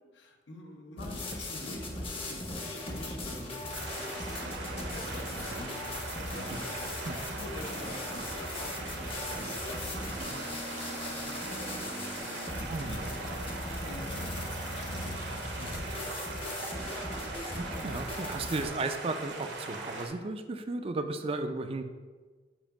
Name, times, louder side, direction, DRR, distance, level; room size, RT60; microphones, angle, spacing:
voice 1, 0.1-16.7 18.2-18.5, left 2 dB, 75° left, 2 dB, 0.8 m, -48 dB
sound 1, 1.0-18.7, left 1 dB, 30° left, 0.8 m, -38 dB
sound 2, 3.7-20.1, right 3 dB, 75° right, 1.0 m, -40 dB
voice 2, 12.7-13.0 17.5-21.8, right 3 dB, 30° right, 8 dB, 0.4 m, -34 dB
7.1 x 2.6 x 5.0 m, 1.4 s
head